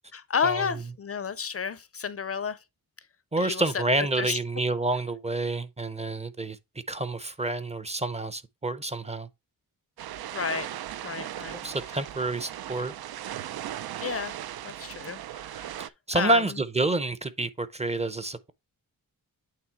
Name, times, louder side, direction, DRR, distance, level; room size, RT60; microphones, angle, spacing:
voice 1, 0.1-2.6 3.4-3.8 4.2-4.4 10.3-10.7 11.0-11.6 14.0-14.4 14.6-16.4, left 6 dB, 40° left, 0.5 m, -31 dB
voice 2, 3.3-6.6 6.9-9.3 11.5-12.9 15.8-18.5, right 2 dB, 20° right, 0.5 m, -28 dB
sound 1, 10.0-15.9, right 12 dB, 90° right, 0.5 m, -38 dB
8.7 x 3.5 x 4.4 m
wide cardioid pair, 155°, 36 cm